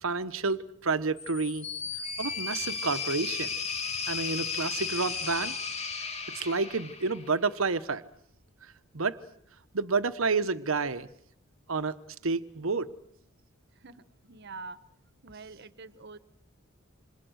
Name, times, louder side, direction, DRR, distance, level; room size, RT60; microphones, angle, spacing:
voice 1, 0.0-1.7 2.2-3.5 4.1-5.6 6.3-8.0 8.9-9.2 9.7-11.1 11.7-12.0 12.2-12.9, right 4 dB, 90° right, 12 dB, 1.1 m, -29 dB
sound 1, 1.2-7.4, left 5 dB, 30° left, 2.5 m, -34 dB
voice 2, 13.7-14.8 15.2-16.2, right 3 dB, 55° right, 14 dB, 1.3 m, -45 dB
28.5 x 27.0 x 6.4 m, 0.67 s
head